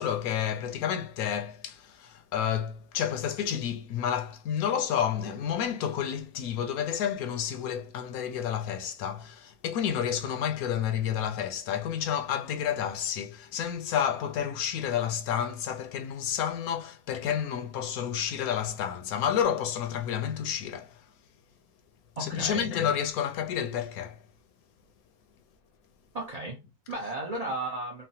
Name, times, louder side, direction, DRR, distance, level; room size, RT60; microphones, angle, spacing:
voice 1, 0.0-21.0 22.2-24.2, left 9 dB, 75° left, 1.0 m, -30 dB
voice 2, 22.2-22.7 26.1-28.0, right 2 dB, 70° right, 0.3 m, -35 dB
3.2 x 2.0 x 2.7 m
omnidirectional pair, 1.6 m